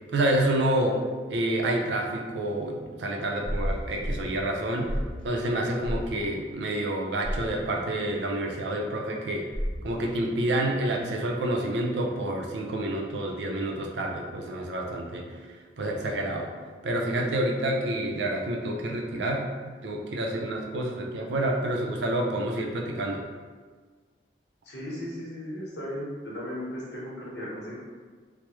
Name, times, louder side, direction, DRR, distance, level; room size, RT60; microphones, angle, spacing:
voice 1, 0.1-1.0 1.3-4.9 5.2-9.5 9.8-15.3 15.8-16.5 16.8-23.2, right 1 dB, 80° right, 0 dB, 0.5 m, -28 dB
sound 1, 3.4-4.3 4.8-5.2 5.8-6.1 7.2-7.5 9.5-9.9, equal, 5° left, 0.5 m, -31 dB
voice 2, 24.6-27.8, equal, 70° left, -5 dB, 0.9 m, -36 dB
3.3 x 2.0 x 3.0 m, 1.5 s
head